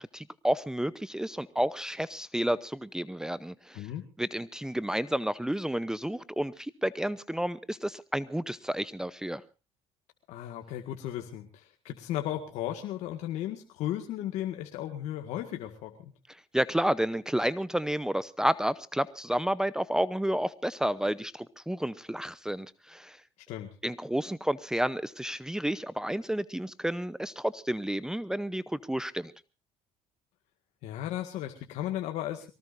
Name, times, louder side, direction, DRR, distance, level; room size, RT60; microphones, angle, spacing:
voice 1, 0.0-3.9 4.2-9.4 16.5-23.2 23.8-29.3, right 1 dB, 5° right, 17 dB, 0.8 m, -31 dB
voice 2, 10.3-16.1 23.5-23.7 30.8-32.5, left 12 dB, 75° left, 4 dB, 1.9 m, -35 dB
23.5 x 18.5 x 2.6 m, 0.32 s
cardioid pair, 95°, 12 cm